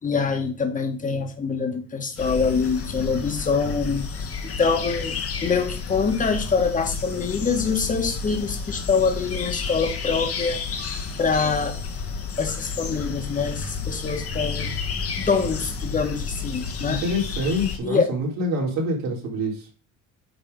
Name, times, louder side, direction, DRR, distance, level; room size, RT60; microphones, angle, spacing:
voice 1, 0.0-4.0 4.4-5.1 5.4-10.6 11.2-11.7 12.4-14.7 15.2-17.0 17.8-18.1, left 5 dB, 25° left, 4 dB, 1.8 m, -24 dB
sound 1, 2.2-17.8, left 5 dB, 45° left, 1.7 m, -31 dB
voice 2, 16.9-19.7, equal, 75° right, -1 dB, 3.9 m, -26 dB
9.3 x 4.0 x 5.4 m, 0.37 s
cardioid pair, 135°, 33 cm